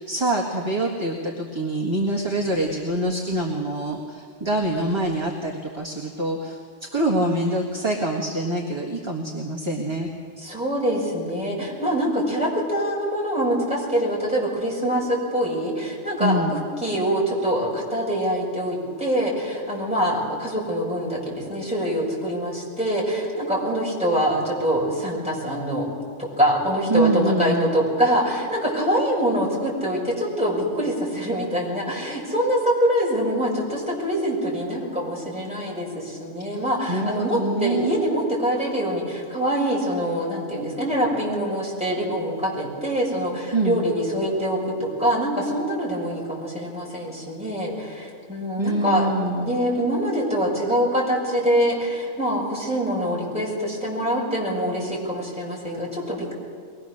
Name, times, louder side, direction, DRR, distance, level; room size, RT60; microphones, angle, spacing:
voice 1, 0.0-6.6 6.9-10.1 16.2-16.6 26.9-27.7 36.6-38.0 43.5-43.8 48.6-49.5, right 1 dB, 20° right, -1 dB, 1.7 m, -25 dB
voice 2, 10.4-25.9 26.2-56.3, equal, 5° right, -5 dB, 6.5 m, -24 dB
23.0 x 20.0 x 6.6 m, 2.1 s
omnidirectional pair, 1.4 m